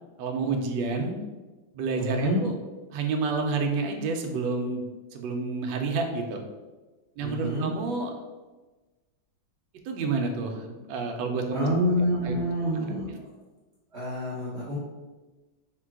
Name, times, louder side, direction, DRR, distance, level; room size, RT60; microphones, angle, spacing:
voice 1, 0.2-1.2 1.7-2.6 2.9-6.4 7.2-8.1 9.8-11.7 12.2-12.3, right 4 dB, 80° right, 3 dB, 1.3 m, -29 dB
voice 2, 2.0-2.4 7.2-7.7 11.5-13.1 13.9-14.8, equal, 50° right, -7 dB, 0.8 m, -27 dB
3.9 x 2.2 x 4.5 m, 1.2 s
omnidirectional pair, 2.1 m